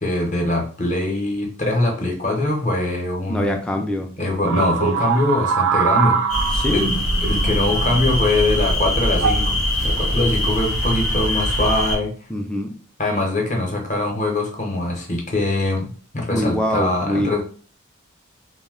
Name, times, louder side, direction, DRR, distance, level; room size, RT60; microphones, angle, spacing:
voice 1, 0.0-3.6 4.2-6.2 6.7-12.1 13.0-17.4, left 2 dB, 35° left, 0 dB, 0.7 m, -22 dB
voice 2, 3.3-4.1 6.5-6.8 12.3-12.7 16.3-17.3, equal, 5° left, 2 dB, 0.3 m, -23 dB
sound 1, 4.4-8.3 9.1-9.5 10.4-10.8, right 6 dB, 80° right, 0.3 m, -23 dB
sound 2, 6.3-12.0, equal, 85° left, 0.8 m, -22 dB
2.6 x 2.1 x 3.6 m, 0.42 s
head